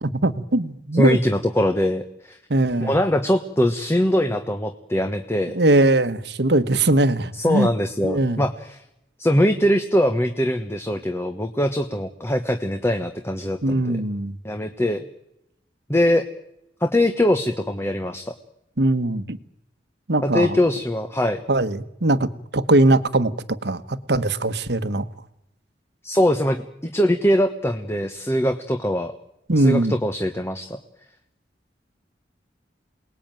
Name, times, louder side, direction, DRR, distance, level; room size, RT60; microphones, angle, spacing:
voice 1, 0.0-1.2 2.5-2.9 5.5-7.7 8.0-8.4 13.6-14.4 18.8-19.4 20.1-20.6 21.5-25.0 29.5-29.9, right 2 dB, 65° right, 12 dB, 1.4 m, -20 dB
voice 2, 0.9-2.4 2.8-5.6 7.4-8.8 9.2-14.0 14.4-15.0 15.9-16.2 16.8-18.3 20.2-21.4 26.0-29.1 29.6-30.8, left 1 dB, 15° left, 7 dB, 1.2 m, -22 dB
28.5 x 20.0 x 9.2 m, 0.84 s
head